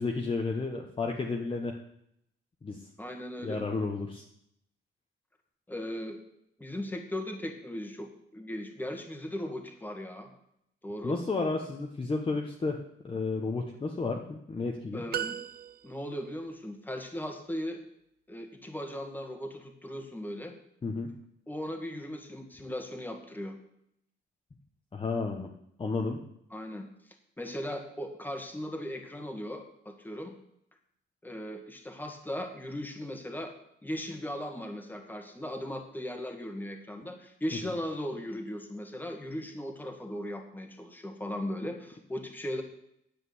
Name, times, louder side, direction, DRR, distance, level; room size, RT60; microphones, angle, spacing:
voice 1, 0.0-1.7 2.6-2.8 3.4-4.2 11.0-12.8 13.0-15.0 20.8-21.1 24.9-25.5 25.8-26.2, left 3 dB, 25° left, 1 dB, 1.1 m, -32 dB
voice 2, 3.0-3.6 5.7-6.2 6.6-10.3 10.8-11.2 14.9-15.4 15.8-17.8 18.3-20.6 21.5-23.6 26.5-26.9 27.4-30.3 31.2-33.5 33.8-42.6, left 1 dB, 10° left, 4 dB, 1.8 m, -38 dB
sound 1, 15.1-16.2, right 10 dB, 50° right, 0.5 m, -36 dB
9.9 x 7.7 x 8.0 m, 0.75 s
cardioid pair, 130°, 21 cm